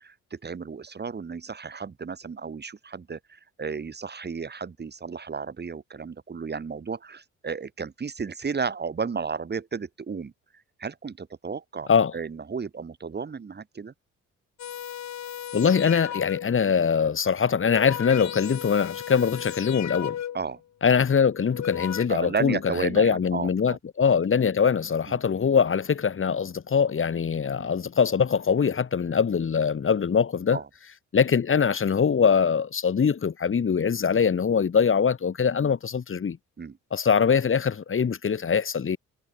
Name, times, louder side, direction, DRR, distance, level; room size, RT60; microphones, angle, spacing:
voice 1, 0.0-10.3 10.8-13.9 20.3-20.6 22.1-23.8 25.1-25.2 27.6-27.7 30.5-30.7 36.6-36.8, right 5 dB, 35° right, 2.4 m, -33 dB
sound 1, 14.6-16.7 17.4-20.6 21.3-22.1, left 10 dB, 65° left, 4.3 m, -35 dB
voice 2, 15.5-20.2 20.8-30.6 31.1-36.4 36.9-39.0, left 6 dB, 45° left, 4.4 m, -23 dB
cardioid pair, 90°, 30 cm